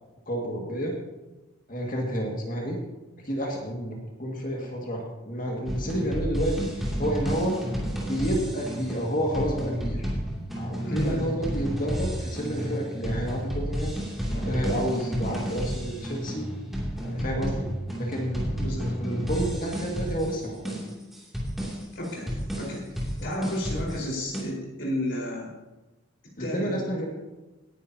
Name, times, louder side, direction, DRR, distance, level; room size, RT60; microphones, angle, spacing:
voice 1, 0.3-1.0 1.7-2.8 3.2-6.7 7.0-7.6 7.9-10.1 10.6-13.9 14.3-16.5 17.0-17.6 18.0-18.4 19.0-20.7 26.4-27.1, equal, 40° left, -1 dB, 2.0 m, -30 dB
sound 1, 5.6-24.4, equal, ahead, 2.7 m, -31 dB
voice 2, 10.8-11.2 17.2-17.5 18.6-19.2 21.9-25.5 26.4-26.8, equal, 65° left, -2 dB, 4.6 m, -32 dB
18.5 x 10.5 x 2.9 m, 1.1 s
head